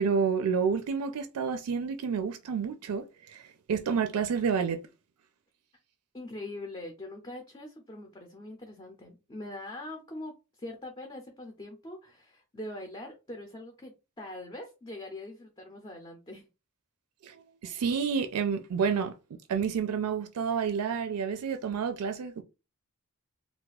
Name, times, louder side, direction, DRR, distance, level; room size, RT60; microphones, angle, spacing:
voice 1, 0.0-4.8 17.2-19.1 19.5-22.4, right 6 dB, 85° right, 0.4 m, -29 dB
voice 2, 6.1-10.3 10.6-16.4, left 1 dB, 20° left, 0.5 m, -42 dB
2.4 x 2.3 x 4.0 m
head